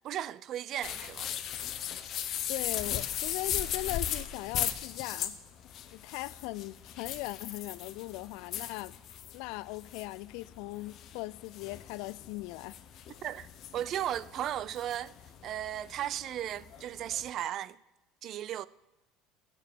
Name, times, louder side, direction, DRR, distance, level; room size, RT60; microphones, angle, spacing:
voice 1, 0.0-1.3 13.2-13.5 13.7-15.1 15.4-17.8 18.2-18.7, right 11 dB, 50° right, 0.5 m, -35 dB
sound 1, 0.8-17.3, left 10 dB, 50° left, 1.1 m, -38 dB
voice 2, 2.5-5.4 5.9-9.0 9.3-12.8, left 19 dB, 75° left, 0.4 m, -39 dB
15.0 x 7.0 x 9.3 m
supercardioid pair, 110°, 0 cm